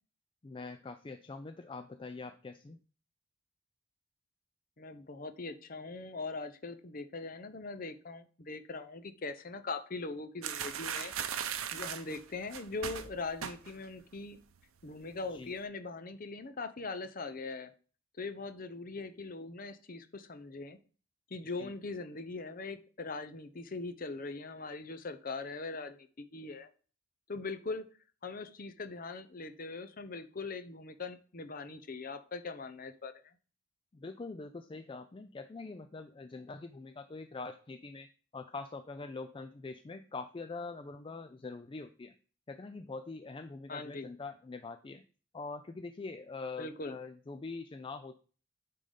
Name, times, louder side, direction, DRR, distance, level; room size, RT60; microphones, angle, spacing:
voice 1, 0.4-2.8 15.3-15.5 21.5-21.7 33.9-38.1 38.3-42.1 42.5-45.0 45.3-48.2, left 3 dB, 25° left, 9 dB, 0.3 m, -44 dB
voice 2, 4.8-11.1 11.7-14.4 14.8-17.7 18.2-20.8 21.3-26.7 27.3-27.8 28.2-33.1 43.7-44.1 46.6-47.0, left 3 dB, 40° left, 10 dB, 0.7 m, -41 dB
sound 1, 10.4-14.0 14.2-14.6 14.9-15.5, right 8 dB, 90° right, 0.7 m, -38 dB
9.2 x 3.8 x 5.0 m, 0.39 s
head